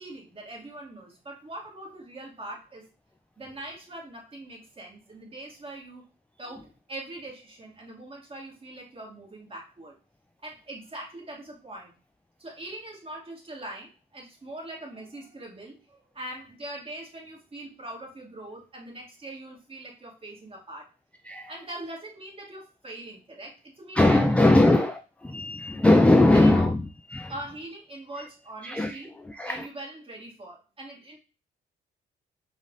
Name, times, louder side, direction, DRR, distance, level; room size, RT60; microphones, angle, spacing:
voice 1, 0.0-2.9 3.4-6.0 6.4-10.0 10.4-11.9 12.4-20.9 21.5-24.7 26.3-26.7 27.3-29.1 29.4-31.2, right 1 dB, 30° right, 2.2 m, -42 dB
voice 2, 23.9-26.8 27.1-27.3 28.6-29.7, left 1 dB, 5° left, 0.3 m, -20 dB
5.1 x 2.6 x 4.0 m
cardioid pair, 90°, 20 cm